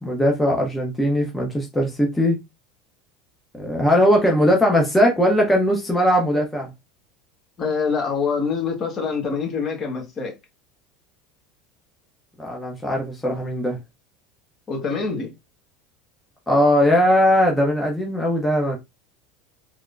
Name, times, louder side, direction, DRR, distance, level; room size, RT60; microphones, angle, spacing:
voice 1, 0.0-2.4 3.6-6.7 12.4-13.8 16.5-18.8, equal, 10° left, 0.8 m, -19 dB
voice 2, 7.6-10.4 14.7-15.3, left 5 dB, 40° left, 1.4 m, -25 dB
3.5 x 2.1 x 2.5 m
supercardioid pair, 100°, 0 cm